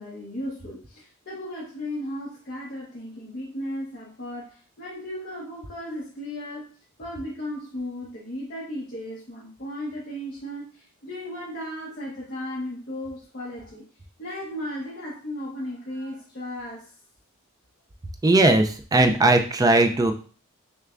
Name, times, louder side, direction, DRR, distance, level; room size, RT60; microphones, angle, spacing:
voice 1, 0.0-6.7 7.0-13.8 14.2-17.0, left 1 dB, 45° left, -6 dB, 0.9 m, -35 dB
voice 2, 18.2-20.1, right 2 dB, 15° right, 6 dB, 0.3 m, -18 dB
6.5 x 2.2 x 2.4 m, 0.40 s
head